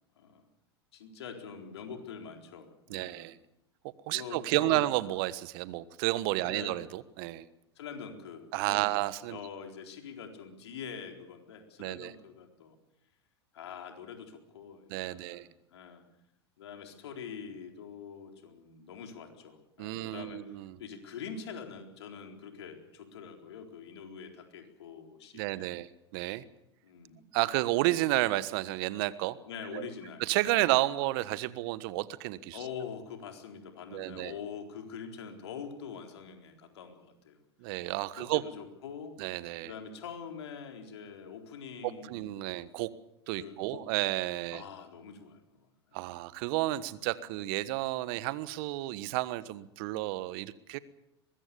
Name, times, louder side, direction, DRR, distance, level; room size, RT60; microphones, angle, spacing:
voice 1, 0.9-3.3 4.1-4.9 6.4-6.8 7.8-8.9 9.3-12.7 13.5-16.0 16.6-25.7 26.8-27.2 29.4-30.6 32.5-37.4 38.1-39.1 39.6-42.6 43.4-43.8 44.5-46.0, left 6 dB, 75° left, 4 dB, 4.1 m, -45 dB
voice 2, 2.9-3.4 4.1-7.5 8.5-9.4 11.8-12.1 14.9-15.5 19.8-20.8 25.3-26.4 27.3-29.4 29.7-29.9 30.2-32.6 33.9-34.3 37.6-38.4 39.2-39.7 41.8-42.9 43.3-44.6 45.9-50.8, right 17 dB, 60° right, 16 dB, 1.4 m, -31 dB
23.0 x 21.5 x 7.0 m, 0.84 s
hypercardioid pair, 90°, 14 cm